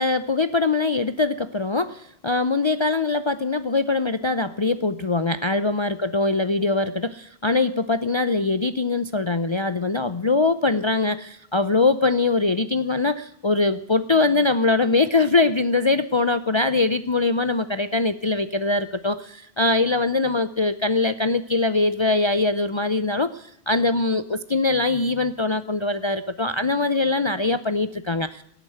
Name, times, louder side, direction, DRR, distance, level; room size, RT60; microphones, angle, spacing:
voice 1, 0.0-28.4, left 3 dB, 35° left, 12 dB, 0.5 m, -22 dB
17.5 x 9.1 x 7.8 m, 0.75 s
omnidirectional pair, 1.1 m